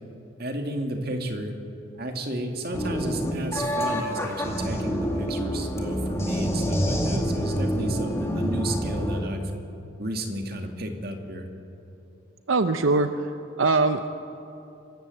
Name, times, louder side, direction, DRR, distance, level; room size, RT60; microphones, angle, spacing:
voice 1, 0.4-1.6 2.0-9.5 10.0-11.5, right 1 dB, 50° right, 4 dB, 2.1 m, -32 dB
sound 1, 2.7-9.2, equal, 15° left, 2.2 m, -27 dB
voice 2, 12.5-13.1 13.6-14.2, right 3 dB, 75° right, 9 dB, 0.7 m, -21 dB
25.5 x 14.0 x 7.8 m, 2.9 s
head